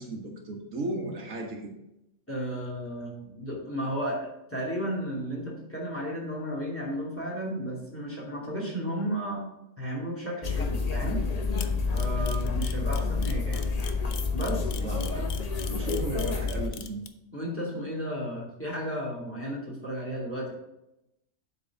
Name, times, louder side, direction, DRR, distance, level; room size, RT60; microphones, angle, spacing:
voice 1, 0.0-1.7 14.7-15.3 15.6-17.0, right 2 dB, 70° right, 1 dB, 1.7 m, -35 dB
voice 2, 2.3-9.4 9.8-11.2 11.9-13.7 14.3-14.7 17.3-20.5, equal, 10° left, -4 dB, 2.5 m, -33 dB
sound 1, 10.4-16.7, left 4 dB, 35° left, 0.7 m, -29 dB
Camera, 11.6-17.1, left 9 dB, 75° left, 1.2 m, -40 dB
7.9 x 4.6 x 6.2 m, 0.87 s
omnidirectional pair, 1.5 m